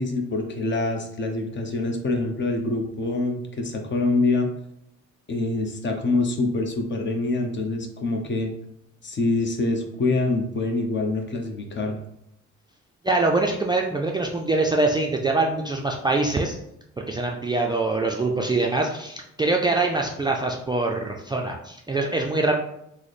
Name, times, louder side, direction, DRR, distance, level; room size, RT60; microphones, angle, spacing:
voice 1, 0.0-4.5 5.3-8.5 9.0-12.0, left 2 dB, 40° left, 4 dB, 0.6 m, -25 dB
voice 2, 13.0-16.6 17.1-22.6, right 2 dB, 15° right, 0 dB, 0.3 m, -24 dB
3.1 x 2.1 x 4.0 m, 0.80 s
cardioid pair, 90°, 30 cm